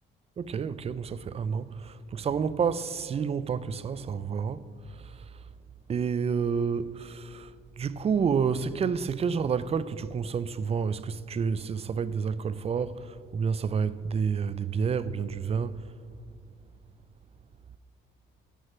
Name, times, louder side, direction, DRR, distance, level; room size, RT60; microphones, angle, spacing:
voice 1, 0.4-5.4 5.9-15.9, right 6 dB, 30° right, 0.4 m, -29 dB
10.0 x 4.9 x 5.9 m
cardioid pair, 90°, 20 cm